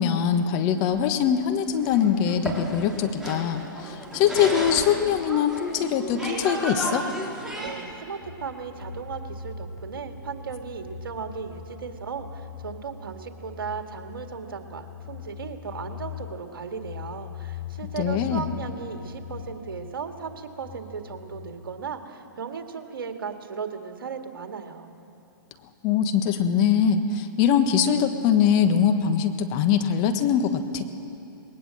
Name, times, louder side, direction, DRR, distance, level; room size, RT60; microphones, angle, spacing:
voice 1, 0.0-7.1 18.0-18.5 25.8-30.9, left 8 dB, 35° left, 8 dB, 1.4 m, -22 dB
sound 1, 0.6-7.9, right 1 dB, 5° right, 3.8 m, -34 dB
voice 2, 7.6-24.9, right 6 dB, 75° right, 6 dB, 1.9 m, -36 dB
sound 2, 8.2-21.6, left 7 dB, 65° left, 3.0 m, -40 dB
20.5 x 19.0 x 7.7 m, 2.8 s
hypercardioid pair, 125°, 12 cm